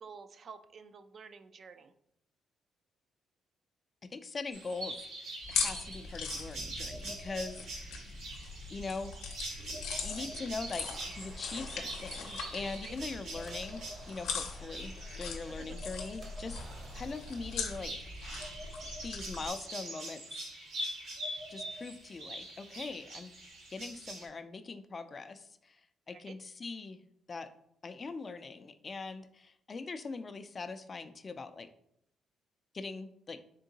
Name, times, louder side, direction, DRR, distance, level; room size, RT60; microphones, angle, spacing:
voice 1, 0.0-1.9 12.8-13.0 15.6-15.7 26.1-26.4, right 5 dB, 50° right, 10 dB, 0.3 m, -50 dB
voice 2, 4.0-5.0 5.5-8.3 8.7-9.1 10.0-16.6 16.9-18.1 19.0-20.4 21.5-23.3 23.7-25.8 26.1-27.0 27.3-27.5 27.8-31.7 32.7-33.4, left 4 dB, 35° left, 10 dB, 0.3 m, -42 dB
sound 1, 4.5-24.3, right 1 dB, 80° right, 1.2 m, -44 dB
sound 2, 5.4-19.5, left 5 dB, 90° left, 0.6 m, -41 dB
sound 3, 10.0-17.9, right 2 dB, 30° right, 0.7 m, -58 dB
3.7 x 3.5 x 2.7 m, 0.74 s
cardioid pair, 90°, 0 cm